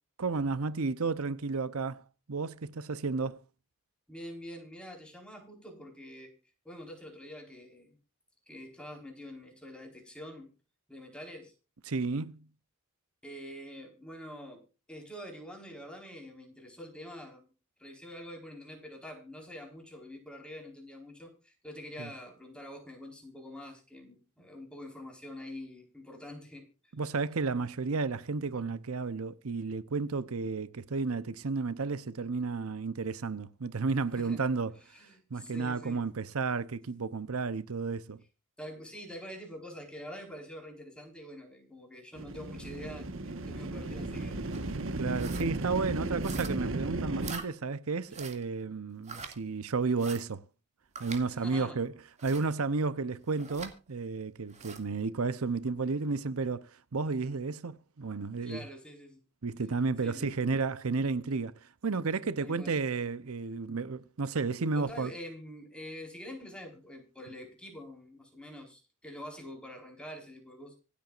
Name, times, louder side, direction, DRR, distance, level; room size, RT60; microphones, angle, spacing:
voice 1, 0.2-2.0 2.3-3.4 11.9-12.5 22.0-22.1 26.9-34.8 35.3-38.2 45.0-50.4 51.0-51.9 52.2-58.6 59.4-65.1, right 4 dB, 80° right, 0.8 m, -32 dB
voice 2, 4.1-6.3 6.6-8.0 8.5-10.5 10.9-11.5 13.2-17.5 17.8-26.6 34.2-34.4 34.9-36.0 38.6-44.4 46.0-46.1 51.4-51.8 58.4-59.2 60.0-60.5 62.4-62.7 64.7-70.8, equal, 5° left, 4.5 m, -46 dB
sound 1, 42.2-47.3, right 2 dB, 65° right, 1.4 m, -35 dB
sound 2, 44.5-44.7 45.1-45.5 46.2-46.7 47.2-47.5 48.1-48.4 49.0-49.3 50.0-50.2 51.0-51.2 52.2-52.5 53.4-53.7 54.5-54.8, right 5 dB, 30° right, 2.3 m, -44 dB
25.5 x 8.5 x 2.5 m
head